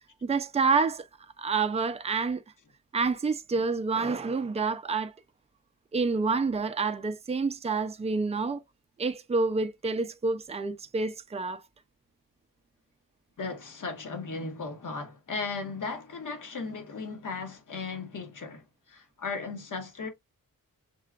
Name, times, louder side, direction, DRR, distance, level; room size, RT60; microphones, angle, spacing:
voice 1, 0.2-1.0 1.4-2.4 2.9-5.1 5.9-8.6 9.0-11.6, right 4 dB, 20° right, 0.4 m, -28 dB
voice 2, 13.4-20.1, left 4 dB, 60° left, 1.4 m, -36 dB
6.6 x 2.4 x 2.3 m
cardioid pair, 70°, 36 cm